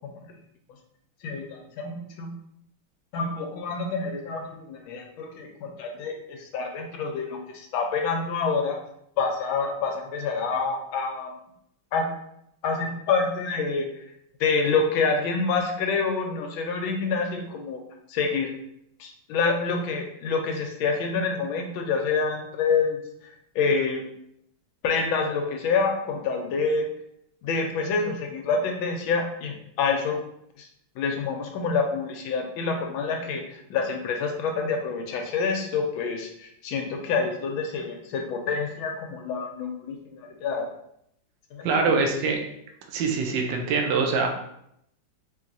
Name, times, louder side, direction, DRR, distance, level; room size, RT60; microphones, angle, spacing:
voice 1, 1.2-2.3 3.1-8.8 9.2-11.3 11.9-12.1 12.6-13.9 14.4-17.8 18.1-18.5 19.0-23.0 23.5-24.0 24.8-26.9 27.4-30.2 30.6-30.7 31.0-40.7 41.5-42.0, left 4 dB, 85° left, 3 dB, 1.4 m, -27 dB
voice 2, 41.6-42.4 42.9-44.3, right 4 dB, 75° right, 2 dB, 1.2 m, -24 dB
4.4 x 2.8 x 2.6 m, 0.75 s
omnidirectional pair, 2.2 m